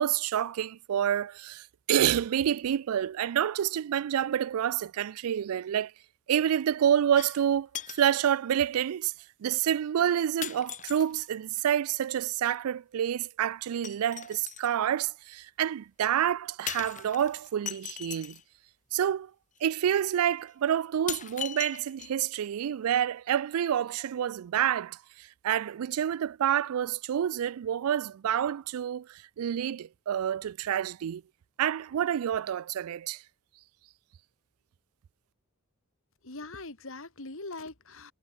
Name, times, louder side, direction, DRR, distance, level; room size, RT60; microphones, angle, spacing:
voice 1, 0.0-5.9 6.3-9.1 9.4-18.4 18.9-19.3 19.6-31.2 31.6-33.2, right 9 dB, 90° right, 0.3 m, -28 dB
sound 1, 7.2-7.5 7.7-8.2 9.1-9.2 10.4-11.3 13.8-14.7 16.7-18.4 19.6-19.7 20.2-20.3 21.1-22.3 22.7-22.8, left 10 dB, 35° left, 1.0 m, -39 dB
voice 2, 36.2-38.1, left 2 dB, 65° left, 3.2 m, -41 dB
head